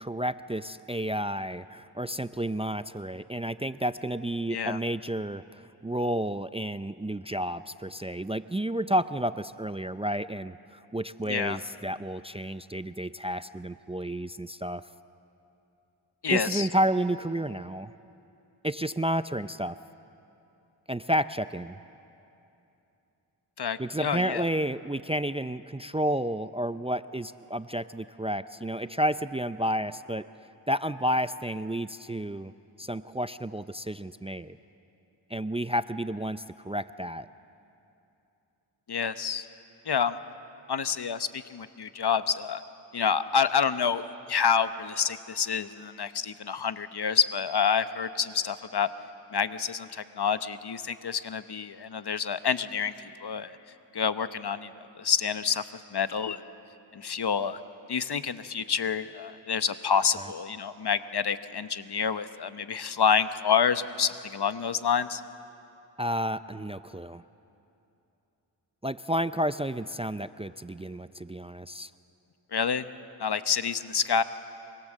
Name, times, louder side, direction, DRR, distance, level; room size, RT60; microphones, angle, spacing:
voice 1, 0.0-14.8 16.3-17.9 18.6-19.8 20.9-21.8 23.8-30.3 30.7-32.5 32.8-34.6 35.3-37.3 66.0-67.2 68.8-71.9, right 1 dB, 15° right, 13 dB, 0.5 m, -31 dB
voice 2, 11.2-11.6 16.2-16.7 23.6-24.5 38.9-39.5 39.9-40.2 40.7-42.6 42.9-48.9 49.3-52.9 53.2-53.5 53.9-54.7 55.0-55.6 55.9-56.4 56.9-57.6 57.9-65.2 72.5-72.9 73.2-74.2, left 7 dB, 55° left, 12 dB, 1.0 m, -28 dB
24.5 x 24.5 x 7.5 m, 2.8 s
cardioid pair, 50°, 47 cm